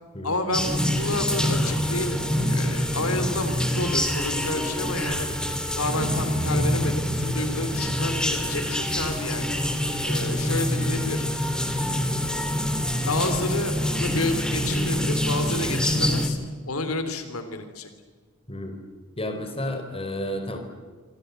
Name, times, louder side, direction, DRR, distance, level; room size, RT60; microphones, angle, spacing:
voice 1, 0.2-5.3 5.8-9.6 10.0-11.3 13.0-16.4 16.6-17.9, left 2 dB, 80° left, 9 dB, 3.2 m, -30 dB
sound 1, 0.5-16.3, equal, 5° left, 3.3 m, -26 dB
voice 2, 19.2-20.6, left 1 dB, 25° left, 6 dB, 4.1 m, -31 dB
26.5 x 26.0 x 8.2 m, 1.5 s
head